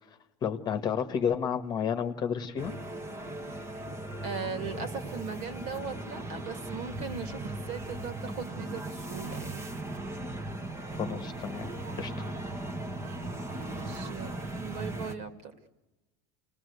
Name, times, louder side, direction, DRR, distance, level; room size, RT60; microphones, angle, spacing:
voice 1, 0.4-2.7 11.0-12.1, left 7 dB, 25° left, 8 dB, 1.6 m, -31 dB
sound 1, 2.6-15.1, right 2 dB, 15° right, 1.6 m, -38 dB
voice 2, 4.2-9.7 13.6-15.6, right 5 dB, 45° right, 9 dB, 2.6 m, -39 dB
29.0 x 20.0 x 8.2 m, 1.1 s
cardioid pair, 165°, 16 cm